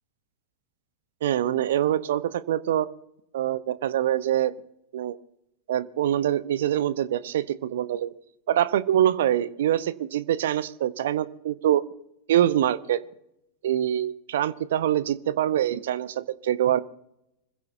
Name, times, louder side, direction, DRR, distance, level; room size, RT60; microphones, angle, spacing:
voice 1, 1.2-2.9 3.3-4.5 4.9-5.2 5.7-8.1 8.5-11.8 12.3-13.0 13.6-16.8, right 11 dB, 60° right, 17 dB, 0.8 m, -24 dB
26.5 x 15.5 x 2.7 m, 0.83 s
figure-of-eight pair, 90°, 0 cm